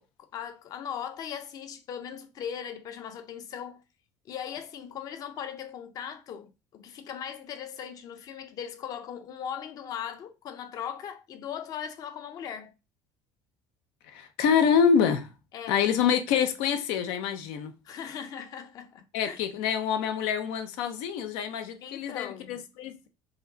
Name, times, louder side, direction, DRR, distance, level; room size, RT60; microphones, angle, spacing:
voice 1, 0.3-3.8 4.3-12.7 15.5-15.9 17.8-19.4 21.8-22.6, left 8 dB, 45° left, 0.7 m, -39 dB
voice 2, 14.1-15.3 15.7-17.7 19.1-23.1, left 7 dB, 90° left, 0.7 m, -26 dB
5.1 x 2.3 x 3.9 m
cardioid pair, 145°, 9 cm